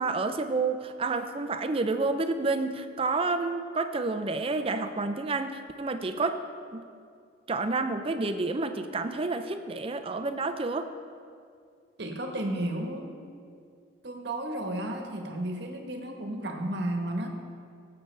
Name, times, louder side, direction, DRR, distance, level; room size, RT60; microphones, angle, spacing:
voice 1, 0.0-6.4 6.7-6.8 7.5-10.9, right 3 dB, 30° right, 8 dB, 0.5 m, -29 dB
voice 2, 12.0-13.2 14.0-17.3, right 1 dB, 55° right, 3 dB, 1.2 m, -33 dB
17.5 x 7.8 x 3.3 m, 2.3 s
head